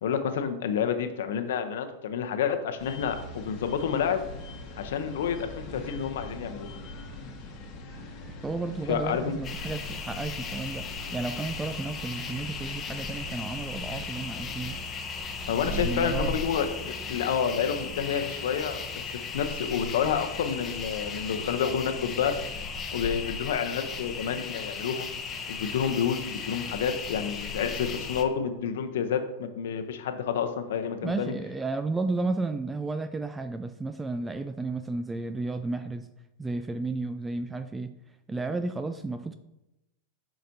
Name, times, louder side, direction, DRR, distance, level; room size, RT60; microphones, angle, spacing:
voice 1, 0.0-4.2 4.8-6.8 8.9-9.4 15.5-18.8 19.1-22.4 22.9-25.1 25.5-31.3, left 7 dB, 75° left, 7 dB, 0.7 m, -29 dB
sound 1, 2.8-14.8, left 1 dB, 45° left, 1.1 m, -43 dB
voice 2, 8.4-10.9 11.1-14.8 15.6-16.4 31.0-36.1 36.4-37.9 38.3-39.3, right 3 dB, 15° right, 10 dB, 0.3 m, -32 dB
sound 2, 9.4-28.2, left 4 dB, 30° left, 0.8 m, -36 dB
7.5 x 4.9 x 2.8 m, 0.92 s
hypercardioid pair, 110°, 0 cm